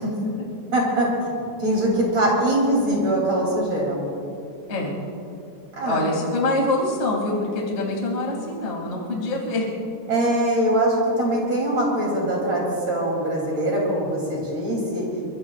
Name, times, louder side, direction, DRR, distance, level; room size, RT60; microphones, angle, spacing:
voice 1, 0.7-1.3 1.6-4.1 5.7-6.0 10.1-15.1, right 1 dB, 35° right, -3 dB, 3.5 m, -22 dB
voice 2, 5.8-9.6, left 2 dB, 55° left, -1 dB, 0.7 m, -25 dB
24.0 x 22.5 x 2.5 m, 2.7 s
omnidirectional pair, 5.9 m